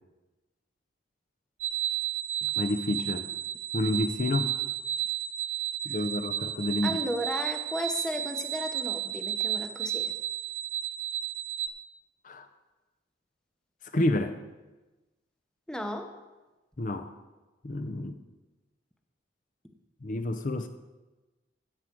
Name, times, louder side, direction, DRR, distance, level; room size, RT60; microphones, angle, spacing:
sound 1, 1.6-11.7, right 11 dB, 90° right, 0.6 m, -32 dB
voice 1, 2.6-3.3 3.7-4.5 5.8-7.0 12.2-12.5 13.9-14.4 16.8-17.1 17.6-18.2 20.0-20.7, left 1 dB, 45° left, 8 dB, 0.6 m, -29 dB
voice 2, 6.8-10.1 15.7-16.2, equal, 5° left, 5 dB, 0.8 m, -34 dB
13.5 x 4.9 x 7.4 m, 1.1 s
head